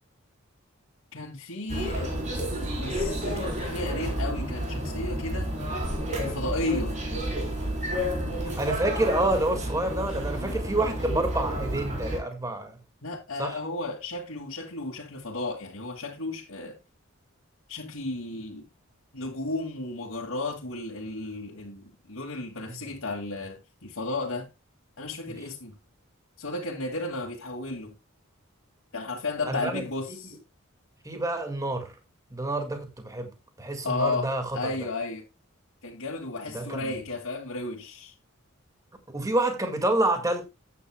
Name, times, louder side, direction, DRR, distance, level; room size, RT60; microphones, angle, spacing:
voice 1, 1.1-2.2 2.8-5.5 6.1-7.0 13.0-16.8 17.7-18.7 19.1-24.5 25.0-25.7 26.4-28.0 28.9-30.4 33.8-35.3 35.8-38.1, left 2 dB, 80° left, 2.3 m, -33 dB
sound 1, 1.7-12.2, equal, 35° right, 4.0 m, -30 dB
voice 2, 8.6-12.8 13.4-13.6 22.7-22.8 25.3-25.4 29.5-29.8 31.0-31.9 32.3-33.3 33.6-34.6 36.5-36.9 39.1-40.4, right 1 dB, 15° right, 1.9 m, -28 dB
14.0 x 9.2 x 2.2 m
head